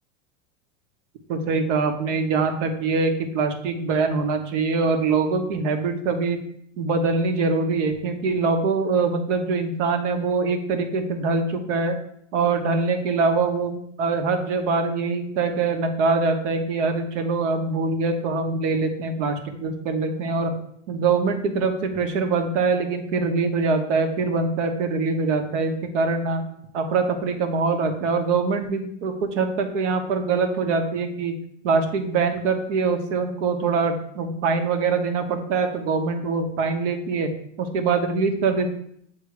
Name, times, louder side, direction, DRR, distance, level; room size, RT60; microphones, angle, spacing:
voice 1, 1.3-6.4 6.8-12.0 12.3-20.5 20.9-26.4 26.7-31.3 31.6-37.3 37.6-38.7, right 4 dB, 75° right, 6 dB, 1.1 m, -23 dB
7.1 x 3.0 x 4.9 m, 0.69 s
supercardioid pair, 125°, 37 cm